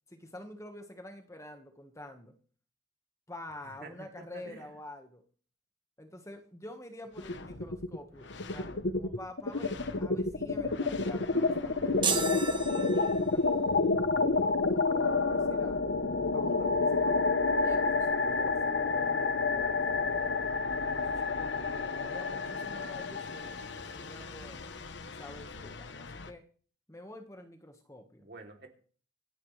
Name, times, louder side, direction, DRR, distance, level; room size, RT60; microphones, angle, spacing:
voice 1, 0.1-2.4 3.3-5.2 6.0-13.4 14.4-15.8 16.3-20.3 20.9-24.7 25.0-26.4 26.9-28.3, left 1 dB, 15° left, 5 dB, 1.4 m, -48 dB
voice 2, 3.6-4.7 28.2-28.7, right 2 dB, 50° right, 3 dB, 3.1 m, -49 dB
sound 1, 7.2-8.0 8.3-26.3, left 3 dB, 60° left, 1.0 m, -30 dB
sound 2, 12.0-13.6, right 5 dB, 25° right, 1.3 m, -33 dB
26.0 x 10.5 x 3.3 m, 0.44 s
head